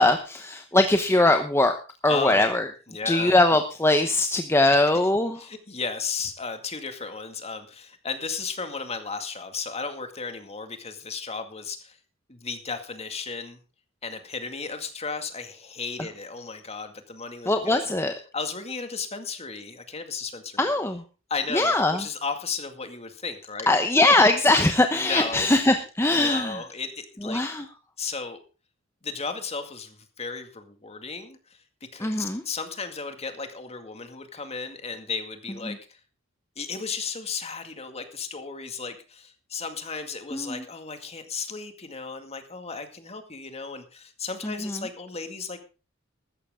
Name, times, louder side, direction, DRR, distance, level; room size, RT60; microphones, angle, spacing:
voice 1, 0.0-1.7 2.0-2.7 3.0-5.4 17.5-18.1 20.6-21.0 21.5-22.0 23.7-26.6 27.2-27.6 32.0-32.4 35.7-35.8 40.3-40.6 44.4-44.8, left 2 dB, 15° left, 6 dB, 0.9 m, -21 dB
voice 2, 2.1-2.4 2.9-3.3 5.4-12.0 12.3-13.6 14.0-17.9 18.3-20.7 21.3-23.7 24.9-25.5 26.1-27.4 28.0-28.4 29.0-31.6 31.9-36.0 36.6-45.6, left 4 dB, 30° left, 7 dB, 2.1 m, -34 dB
15.0 x 13.0 x 3.7 m, 0.33 s
head